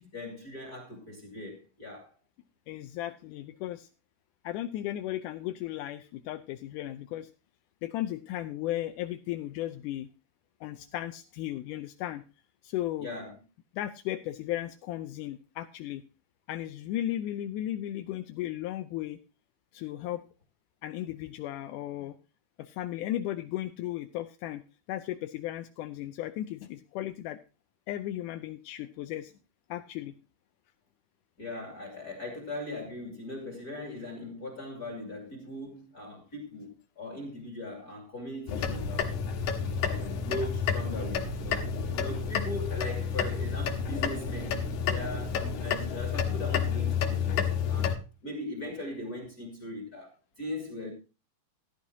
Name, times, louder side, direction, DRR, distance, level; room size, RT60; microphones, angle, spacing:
voice 1, 0.0-2.1 13.0-13.3 31.4-39.2 39.5-50.9, left 1 dB, 30° left, 2.5 m, -40 dB
voice 2, 2.7-3.9 4.4-7.3 7.8-10.1 10.6-12.2 12.6-13.1 13.7-16.0 16.5-19.2 19.7-20.2 20.8-22.2 22.6-24.6 24.9-27.4 27.9-29.3 29.7-30.1 47.6-47.7, left 13 dB, 80° left, 1.8 m, -35 dB
sound 1, 38.5-48.0, left 6 dB, 65° left, 2.5 m, -30 dB
15.0 x 11.5 x 2.8 m
omnidirectional pair, 4.2 m